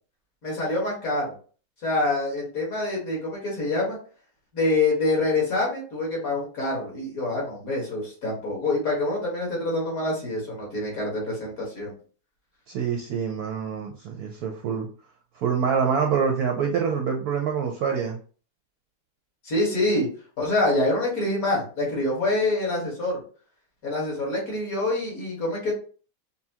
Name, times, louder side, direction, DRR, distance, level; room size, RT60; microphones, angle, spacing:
voice 1, 0.4-1.3 1.8-4.0 4.5-11.9 19.4-20.1 20.4-23.2 23.8-25.7, left 2 dB, 50° left, -3 dB, 2.2 m, -26 dB
voice 2, 12.7-14.9 15.3-18.2, right 6 dB, 70° right, 3 dB, 0.9 m, -26 dB
5.4 x 2.2 x 2.7 m, 0.39 s
omnidirectional pair, 2.0 m